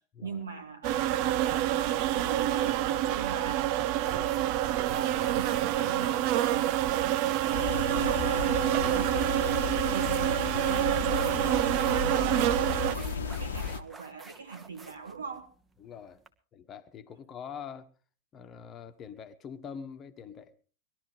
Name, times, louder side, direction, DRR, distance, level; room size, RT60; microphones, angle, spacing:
voice 1, 0.2-3.7 4.9-8.6 9.1-15.5, right 5 dB, 70° right, 2.2 m, -41 dB
sound 1, 0.8-12.9, right 13 dB, 45° right, 0.7 m, -27 dB
voice 2, 4.0-4.5 8.7-9.1 15.8-16.2 16.5-17.9 18.3-20.5, left 7 dB, 25° left, 1.3 m, -44 dB
sound 2, 4.0-16.3, right 3 dB, 15° right, 1.4 m, -49 dB
sound 3, 7.5-13.8, left 6 dB, 65° left, 1.1 m, -34 dB
20.0 x 12.5 x 4.9 m
figure-of-eight pair, 90°, 0 cm